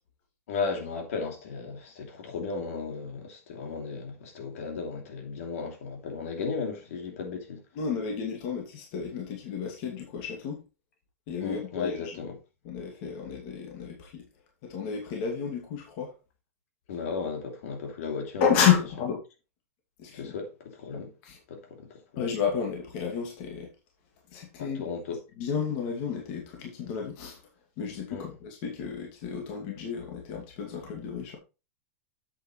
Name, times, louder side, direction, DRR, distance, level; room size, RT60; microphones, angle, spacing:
voice 1, 0.5-7.6 11.4-12.3 16.9-18.4 20.1-21.1 21.5-22.2 24.6-25.2 28.1-28.3, left 5 dB, 65° left, 2.9 m, -35 dB
voice 2, 7.7-10.6 11.3-12.3 12.6-14.2 14.6-16.2 18.4-19.2 20.0-20.3 20.9-21.4 22.2-23.7 24.3-24.9 25.4-27.4 27.8-31.4, left 7 dB, 40° left, 2.4 m, -31 dB
8.2 x 7.8 x 3.2 m
supercardioid pair, 165°, 8 cm